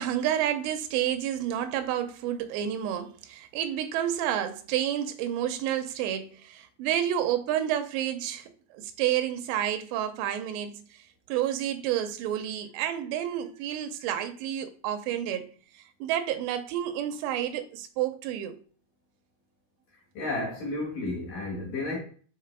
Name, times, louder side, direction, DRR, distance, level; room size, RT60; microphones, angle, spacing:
voice 1, 0.0-10.8 11.3-15.5 15.7-18.5, right 11 dB, 85° right, 2.8 m, -30 dB
voice 2, 20.1-22.0, left 2 dB, 55° left, 2.8 m, -32 dB
6.6 x 3.9 x 4.5 m
omnidirectional pair, 5.1 m